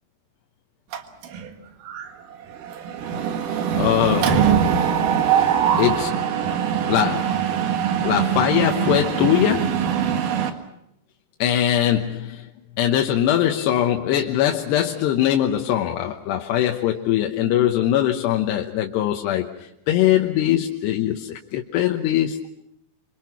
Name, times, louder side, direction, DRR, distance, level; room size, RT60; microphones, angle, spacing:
Mechanisms, 0.9-1.5 1.9-2.1 2.3-10.5, right 8 dB, 60° right, 2.9 m, -22 dB
voice 1, 3.5-4.7 5.8-6.3 6.9-7.5 8.0-10.0 11.4-12.5 12.8-22.5, left 11 dB, 80° left, 3 dB, 3.2 m, -22 dB
27.5 x 25.0 x 6.0 m, 0.81 s
omnidirectional pair, 4.8 m